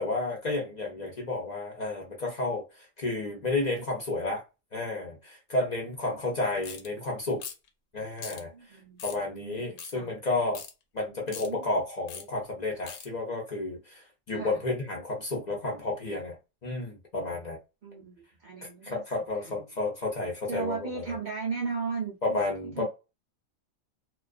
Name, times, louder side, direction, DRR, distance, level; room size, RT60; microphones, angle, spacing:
voice 1, 0.0-4.4 4.7-7.4 7.9-10.6 10.9-16.4 16.6-17.6 18.8-21.1 22.2-22.9, left 2 dB, 45° left, 0.6 m, -31 dB
sound 1, 6.6-6.9 7.4-7.7 8.2-8.4 9.0-9.2 9.8-9.9 10.5-10.7 11.3-11.5 12.1-12.2 12.9-13.1, left 7 dB, 75° left, 1.0 m, -40 dB
voice 2, 8.5-10.1 11.1-11.6 14.3-14.6 17.8-19.0 19.4-19.8 20.5-22.4 22.8-22.9, right 5 dB, 65° right, 0.4 m, -37 dB
2.3 x 2.3 x 2.3 m
omnidirectional pair, 1.4 m